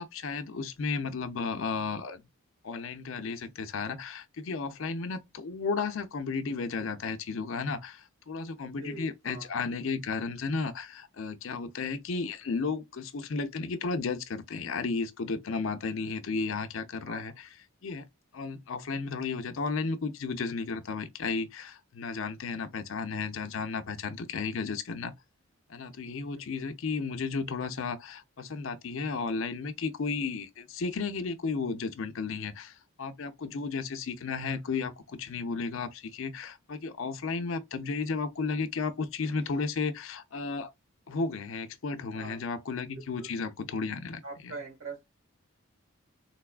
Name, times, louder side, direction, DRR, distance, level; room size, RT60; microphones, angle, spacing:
voice 1, 0.0-2.2 2.6-17.5 17.8-18.1 18.3-25.1 25.7-40.7 41.1-44.5, left 4 dB, 65° left, 0.5 m, -33 dB
voice 2, 8.8-9.5 17.0-17.4 26.3-26.4 42.1-42.4 42.9-43.3 44.2-45.0, right 3 dB, 90° right, 2.1 m, -43 dB
3.9 x 2.3 x 2.3 m
head